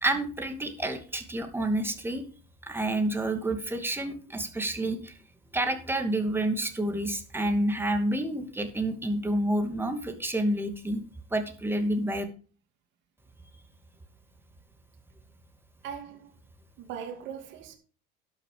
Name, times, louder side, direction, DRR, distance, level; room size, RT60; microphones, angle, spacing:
voice 1, 0.0-2.2 2.6-5.1 5.5-11.0 11.3-12.2, right 1 dB, 10° right, 2.5 m, -29 dB
voice 2, 15.8-16.3 16.8-17.8, right 8 dB, 65° right, 2.5 m, -40 dB
12.0 x 7.2 x 5.1 m
supercardioid pair, 95°, 21 cm